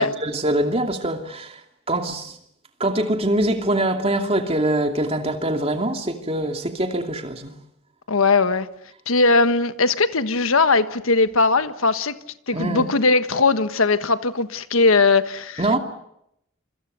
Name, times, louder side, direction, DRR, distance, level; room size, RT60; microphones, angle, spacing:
voice 1, 0.0-1.6 1.9-2.4 2.8-7.5 12.5-12.9 15.6-15.8, right 1 dB, 30° right, 2.6 m, -23 dB
voice 2, 8.1-8.7 9.1-12.1 12.5-15.8, left 3 dB, 90° left, 1.4 m, -19 dB
27.5 x 26.0 x 6.8 m
head